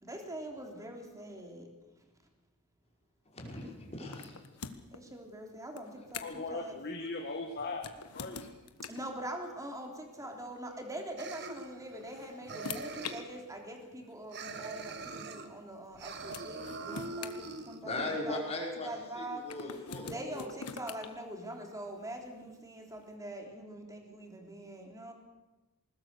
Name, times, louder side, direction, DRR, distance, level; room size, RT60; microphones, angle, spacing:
voice 1, 0.0-1.7 4.9-6.8 8.8-18.4 18.8-19.5 20.0-25.1, right 1 dB, 15° right, 2 dB, 3.3 m, -43 dB
voice 2, 3.3-4.4 17.8-18.9 19.1-20.5, left 2 dB, 30° left, -1 dB, 5.3 m, -38 dB
sound 1, 4.1-5.0 5.7-6.5 7.7-9.1 10.4-10.6 11.7-13.2 14.1-14.2 15.9-16.0 16.3-18.1 19.5-21.1, left 6 dB, 85° left, 1.4 m, -44 dB
voice 3, 6.2-7.9 8.1-8.5, left 3 dB, 45° left, 3 dB, 1.8 m, -38 dB
sound 2, 11.2-12.2 12.5-13.4 14.3-15.5 15.9-17.8, right 3 dB, 50° right, 1.6 m, -42 dB
20.5 x 20.0 x 6.8 m, 1.1 s
head